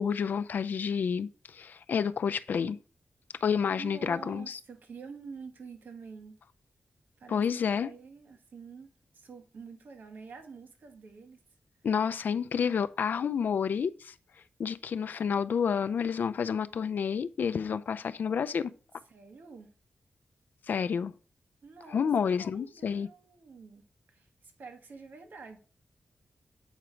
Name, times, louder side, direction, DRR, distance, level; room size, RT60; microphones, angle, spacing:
voice 1, 0.0-2.8 3.4-4.6 7.3-7.9 11.8-14.1 14.6-18.7 20.7-21.1 21.9-23.1, left 7 dB, 70° left, 0.4 m, -29 dB
voice 2, 3.8-6.4 7.2-7.5 7.8-11.4 19.1-19.7 21.6-25.6, right 5 dB, 75° right, 1.4 m, -48 dB
8.1 x 4.4 x 5.0 m
wide cardioid pair, 135°, 3 cm